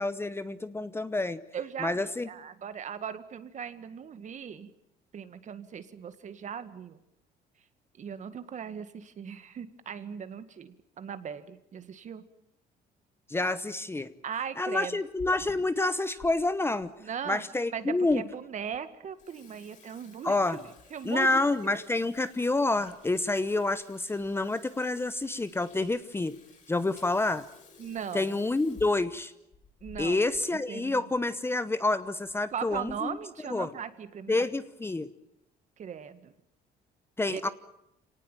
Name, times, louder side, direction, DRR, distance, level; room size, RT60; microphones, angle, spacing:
voice 1, 0.0-1.4 1.8-2.3 13.3-14.1 14.6-16.9 17.3-18.2 20.2-20.6 21.0-26.4 26.7-27.4 28.1-29.3 30.0-33.2 33.5-33.7 34.3-35.1 37.2-37.5, left 2 dB, 15° left, 13 dB, 0.9 m, -28 dB
voice 2, 1.5-4.7 5.1-7.0 8.0-12.2 14.2-15.0 17.0-17.4 17.7-21.9 27.8-28.4 29.8-30.2 30.7-31.1 32.5-34.5 35.8-36.3 37.3-37.5, right 7 dB, 45° right, 11 dB, 1.9 m, -39 dB
Water tap faucet / Sink (filling or washing), 14.9-16.3 16.8-16.9 17.6-17.7 18.1-18.2 18.6-18.8 19.0-30.5 30.8-30.9 31.1-31.3 32.0-32.3 32.7-33.1, left 4 dB, 45° left, 7.1 m, -55 dB
26.0 x 18.5 x 9.1 m, 0.82 s
cardioid pair, 110°, 17 cm